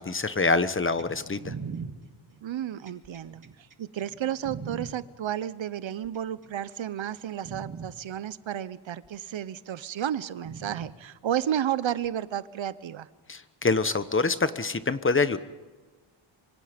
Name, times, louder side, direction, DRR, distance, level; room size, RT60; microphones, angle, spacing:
voice 1, 0.0-1.5 13.3-15.4, left 3 dB, 25° left, 12 dB, 1.1 m, -25 dB
sound 1, 1.0-4.9 5.9-6.5 7.0-7.1 7.4-7.9 9.0-9.1 10.4-10.9 12.0-12.1, right 5 dB, 40° right, 2.1 m, -40 dB
voice 2, 2.4-3.4 3.8-13.1, right 10 dB, 65° right, 16 dB, 1.0 m, -32 dB
26.0 x 25.5 x 5.2 m, 1.3 s
wide cardioid pair, 135°, 50 cm